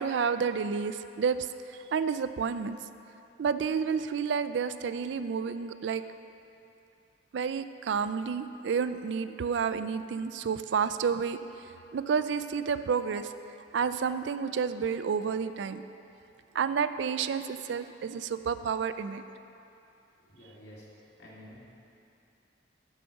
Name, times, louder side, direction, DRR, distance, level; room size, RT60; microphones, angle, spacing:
voice 1, 0.0-1.5 1.7-2.8 3.4-6.0 7.3-11.4 11.9-13.3 13.7-15.8 16.5-19.2, right 6 dB, 70° right, 11 dB, 0.4 m, -30 dB
voice 2, 20.3-20.9 21.2-21.6, equal, 65° left, -6 dB, 2.2 m, -50 dB
10.0 x 6.6 x 5.4 m, 2.7 s
head